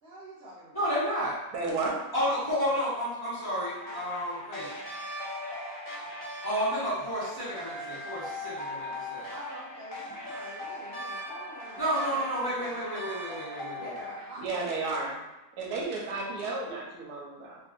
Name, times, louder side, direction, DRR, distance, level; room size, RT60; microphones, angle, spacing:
voice 1, 0.0-0.9 9.3-11.8 12.1-12.8 13.8-15.1, right 1 dB, 60° right, -7 dB, 0.7 m, -46 dB
voice 2, 0.7-1.4 2.1-4.7 6.4-9.3 11.8-13.9, equal, 15° left, -11 dB, 1.0 m, -31 dB
voice 3, 1.5-2.0 14.4-15.2 15.6-17.6, right 3 dB, 75° right, -2 dB, 1.1 m, -32 dB
sound 1, 3.5-14.3, left 1 dB, 85° left, 0.4 m, -40 dB
Wind instrument woodwind instrument, 7.7-13.2, equal, 25° right, 1.5 m, -50 dB
3.1 x 2.6 x 2.4 m, 1.0 s
omnidirectional pair, 1.7 m